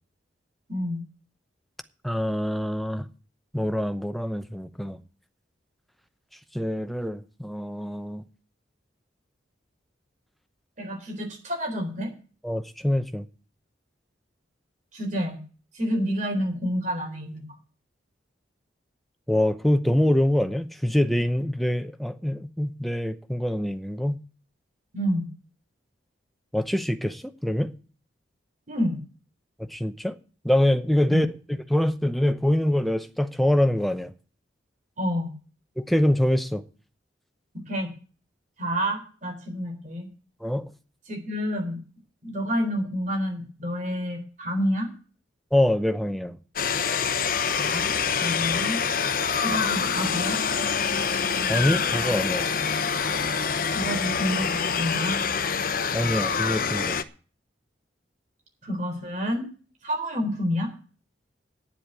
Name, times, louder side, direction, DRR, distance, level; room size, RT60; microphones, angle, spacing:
voice 1, 2.0-3.1 3.5-5.0 6.5-8.2 12.4-13.2 19.3-24.2 26.5-27.7 29.6-30.2 30.4-34.1 35.8-36.6 40.4-40.7 45.5-46.4 51.5-52.5 55.9-57.0, left 1 dB, ahead, 0.8 m, -24 dB
voice 2, 10.8-12.1 14.9-15.4 15.7-17.5 24.9-25.3 28.7-29.0 31.1-31.2 35.0-35.3 37.7-37.9 38.6-40.1 41.1-41.8 42.2-44.9 47.6-47.9 48.2-48.8 49.4-50.4 53.7-55.2 58.6-59.5 59.8-60.7, equal, 40° right, 4.0 m, -28 dB
sound 1, 46.6-57.0, left 6 dB, 50° left, 0.8 m, -26 dB
10.0 x 7.7 x 9.0 m
head